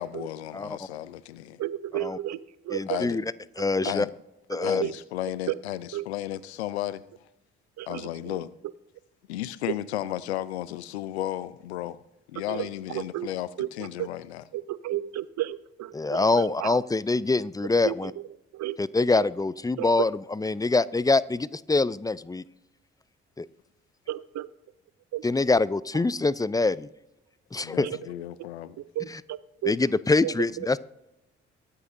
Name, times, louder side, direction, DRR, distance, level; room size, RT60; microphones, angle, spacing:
voice 1, 0.0-1.6 2.9-3.2 3.8-4.1 4.6-7.0 7.9-8.5 9.3-12.0 12.3-14.5 27.6-28.8, left 13 dB, 85° left, 0.5 m, -34 dB
voice 2, 1.6-3.1 3.8-3.9 4.5-4.9 5.5-5.6 5.9-6.1 7.8-8.4 12.5-13.3 13.6-13.7 14.5-16.8 17.8-18.0 18.5-18.8 19.1-19.2 19.8-20.1 24.1-24.5 25.1-25.2 27.8-28.0 29.0-29.7 30.2-30.3, right 14 dB, 55° right, 0.6 m, -33 dB
voice 3, 2.7-3.2 3.6-4.1 4.5-4.8 15.9-18.1 18.8-22.4 23.4-23.5 25.2-26.9 27.5-27.9 29.1-29.2 29.7-30.8, left 3 dB, 10° left, 0.5 m, -24 dB
22.5 x 8.3 x 2.7 m
hypercardioid pair, 45°, 32 cm